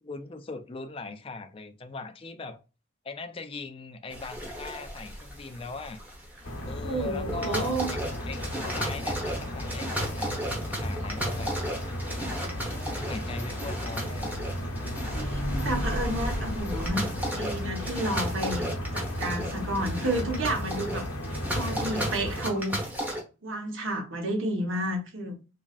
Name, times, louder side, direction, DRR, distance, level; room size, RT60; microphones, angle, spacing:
voice 1, 0.0-2.6 3.0-6.0 6.6-8.0 8.3-11.5 12.7-14.3, left 3 dB, 25° left, 0.3 m, -40 dB
sound 1, 4.1-23.2, equal, 10° right, 0.8 m, -35 dB
sound 2, 6.4-22.4, equal, 80° left, 0.9 m, -34 dB
voice 2, 6.6-7.9 15.1-17.0 17.4-22.8 23.4-25.4, right 1 dB, 70° right, 1.1 m, -31 dB
3.5 x 3.1 x 2.3 m
head